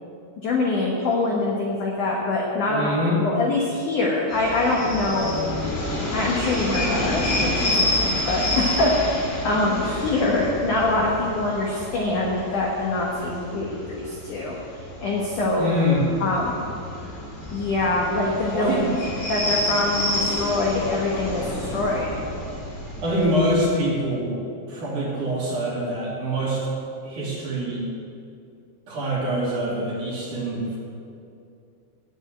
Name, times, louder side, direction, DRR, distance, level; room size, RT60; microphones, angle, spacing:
voice 1, 0.4-2.9 3.2-5.4 6.1-14.5 15.0-15.7 16.2-16.7 17.5-18.8 19.3-22.1, left 2 dB, 70° left, -2 dB, 1.9 m, -24 dB
voice 2, 2.7-3.2 15.6-16.1 18.5-18.9 23.0-24.3 24.7-26.6 27.0-27.8 28.9-30.8, equal, 50° right, -6 dB, 3.7 m, -24 dB
sound 1, 4.3-23.6, left 1 dB, 30° left, 2.3 m, -29 dB
9.6 x 8.9 x 8.0 m, 2.5 s
omnidirectional pair, 5.3 m